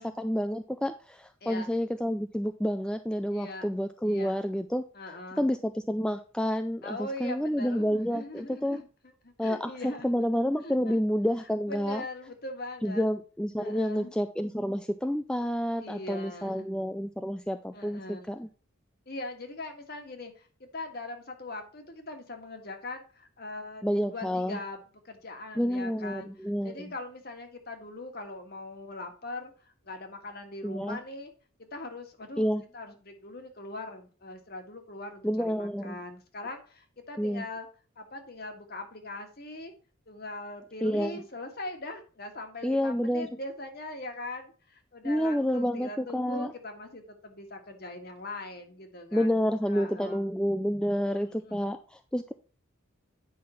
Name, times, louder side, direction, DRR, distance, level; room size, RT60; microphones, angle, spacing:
voice 1, 0.0-4.8 5.4-8.8 9.4-12.0 12.8-18.5 23.8-24.6 25.6-26.7 30.6-31.0 32.4-32.6 35.2-36.0 37.2-37.4 40.8-41.1 42.6-43.3 45.0-46.5 49.1-52.3, equal, 5° left, 8 dB, 0.3 m, -29 dB
voice 2, 3.3-3.7 4.0-4.4 4.9-5.5 6.8-8.9 9.2-10.2 10.6-11.0 11.7-13.1 13.6-14.1 15.8-16.7 17.7-18.5 19.0-26.3 26.6-31.3 31.7-32.5 32.7-37.7 37.9-39.7 40.1-50.2 51.1-51.8, left 2 dB, 45° left, 5 dB, 1.7 m, -41 dB
9.5 x 5.7 x 4.3 m, 0.37 s
head